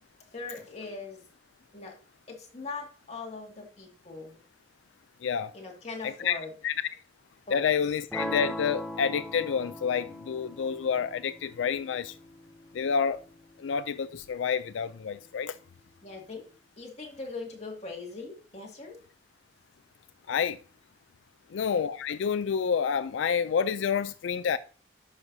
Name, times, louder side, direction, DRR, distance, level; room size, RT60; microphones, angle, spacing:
voice 1, 0.3-1.3 1.7-2.0 2.3-4.4 5.5-6.5 7.5-7.7 16.0-16.5 16.8-19.0, left 3 dB, 35° left, 2.1 m, -40 dB
voice 2, 5.2-5.5 6.0-6.8 7.5-12.2 12.7-13.2 13.6-15.6 20.3-20.6 21.5-24.6, left 7 dB, 85° left, 0.4 m, -29 dB
sound 1, 8.1-14.1, equal, 5° left, 0.6 m, -40 dB
10.5 x 6.2 x 2.7 m
head